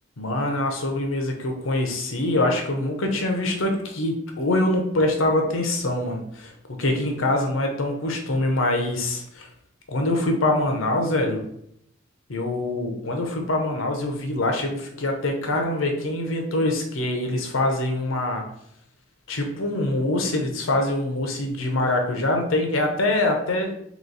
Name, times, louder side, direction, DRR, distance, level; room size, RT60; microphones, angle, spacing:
voice 1, 0.2-9.5 9.9-11.4 12.3-18.4 19.3-23.7, left 1 dB, 90° left, 3 dB, 0.8 m, -24 dB
3.1 x 2.9 x 4.0 m, 0.73 s
head